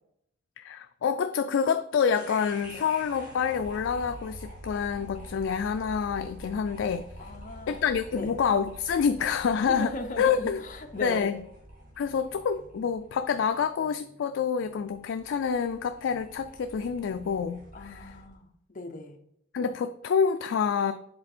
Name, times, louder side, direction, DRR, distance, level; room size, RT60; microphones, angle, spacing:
voice 1, 0.6-7.1 7.7-9.9 10.2-10.6 11.0-11.4 12.0-18.2 19.5-20.9, left 6 dB, 65° left, 8 dB, 0.3 m, -27 dB
sound 1, 2.1-18.3, equal, 45° right, 1.8 m, -47 dB
voice 2, 7.2-7.8 8.1-8.3 9.7-11.3 17.7-19.2, left 1 dB, 40° left, 4 dB, 0.7 m, -38 dB
7.6 x 4.0 x 4.3 m, 0.73 s
head